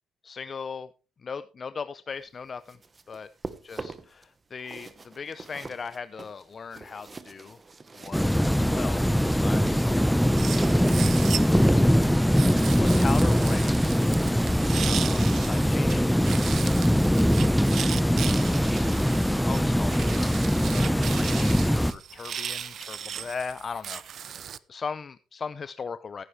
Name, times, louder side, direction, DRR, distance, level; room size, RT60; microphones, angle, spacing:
voice 1, 0.2-0.9 1.2-2.8 3.1-3.3 3.6-7.6 7.9-13.9 14.8-16.9 18.1-26.2, left 5 dB, 40° left, 14 dB, 0.6 m, -39 dB
sound 1, 2.4-4.2 4.6-8.9 9.3-15.9, right 3 dB, 25° right, 1.1 m, -42 dB
sound 2, 8.1-21.9, equal, ahead, 0.7 m, -22 dB
sound 3, 10.4-11.7 12.4-15.9 16.2-24.6, right 9 dB, 55° right, 0.6 m, -37 dB
16.0 x 9.8 x 3.3 m, 0.32 s
cardioid pair, 80°, 0 cm